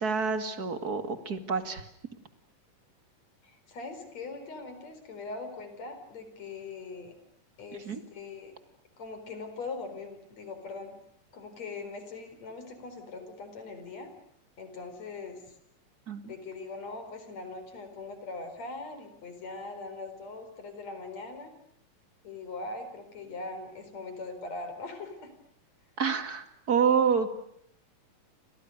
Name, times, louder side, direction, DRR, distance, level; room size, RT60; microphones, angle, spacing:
voice 1, 0.0-1.8 7.9-8.0 16.1-16.2 26.0-27.3, right 6 dB, 30° right, 9 dB, 2.1 m, -27 dB
voice 2, 3.4-7.1 7.6-8.5 9.0-11.0 11.3-14.1 14.6-15.6 16.2-21.5 22.2-25.3, left 3 dB, 50° left, 8 dB, 5.6 m, -41 dB
29.5 x 26.0 x 6.6 m, 0.70 s
omnidirectional pair, 3.9 m